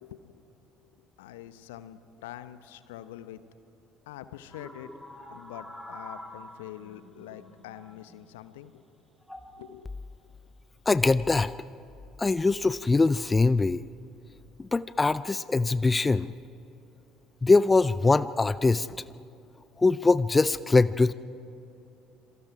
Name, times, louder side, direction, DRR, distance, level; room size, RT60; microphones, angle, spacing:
voice 1, 0.0-0.4 1.2-3.4 4.1-4.9 5.3-8.8 9.6-9.9, left 12 dB, 70° left, 13 dB, 0.9 m, -45 dB
sound 1, 4.5-8.3 9.2-9.6 10.5-10.9, left 1 dB, 5° left, 2.5 m, -46 dB
voice 2, 10.9-11.5 12.2-13.8 14.6-16.3 17.4-18.9 19.8-21.1, left 3 dB, 20° left, 17 dB, 0.4 m, -22 dB
27.0 x 23.5 x 4.8 m, 2.8 s
figure-of-eight pair, 55°, 0 cm